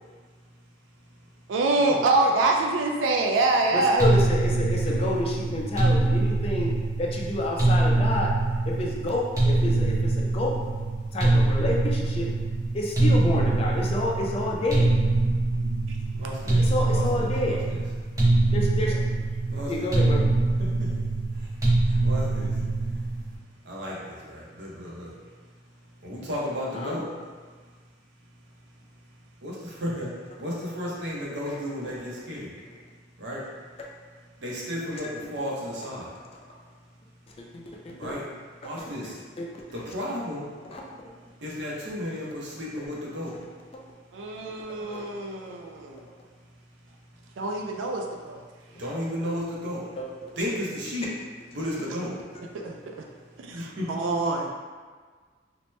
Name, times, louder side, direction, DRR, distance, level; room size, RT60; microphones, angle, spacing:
voice 1, 1.5-4.0 16.5-16.6 44.1-46.0 47.4-48.4 52.5-52.7 53.4-54.5, right 2 dB, 90° right, 2 dB, 0.3 m, -25 dB
voice 2, 3.7-8.3 8.7-10.5 11.1-12.3 12.7-14.9 16.6-17.6 18.5-19.0 19.7-20.3 26.7-27.0 31.8-32.0 33.8-33.9 34.9-35.3 37.4-38.2 38.8-38.9 39.4-39.8 40.6-40.8 44.5-45.0 49.9-50.3, left 1 dB, 30° left, -2 dB, 0.4 m, -29 dB
sound 1, 4.0-23.3, right 2 dB, 20° right, 0.6 m, -24 dB
voice 3, 4.5-5.1 16.2-17.6 19.5-19.9 20.6-20.9 21.3-21.5 21.8-22.6 23.6-25.2 26.0-27.0 29.4-32.5 33.2-33.5 34.4-36.1 38.0-38.3 38.6-39.2 39.7-40.5 41.4-43.3 48.8-49.9 50.4-51.1 51.5-52.1 53.5-53.9, equal, 65° right, -5 dB, 0.7 m, -34 dB
2.9 x 2.1 x 3.0 m, 1.5 s
head